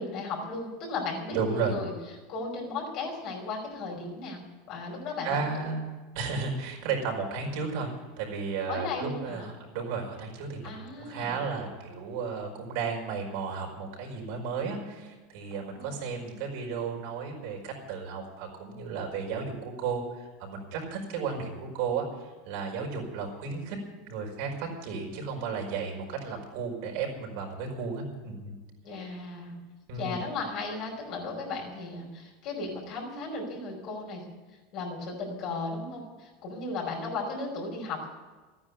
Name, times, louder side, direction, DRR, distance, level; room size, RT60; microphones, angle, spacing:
voice 1, 0.0-1.9 2.3-4.4 4.7-5.5 8.7-9.5 10.6-11.4 15.5-16.0 28.8-29.6 29.9-34.2 34.7-38.1, left 3 dB, 50° left, -1 dB, 5.4 m, -35 dB
voice 2, 1.3-1.8 5.2-7.9 8.2-23.8 24.0-28.5 28.9-29.1 29.9-30.2, right 5 dB, 70° right, 0 dB, 5.2 m, -34 dB
13.5 x 9.9 x 9.8 m, 1.3 s
supercardioid pair, 135°, 0 cm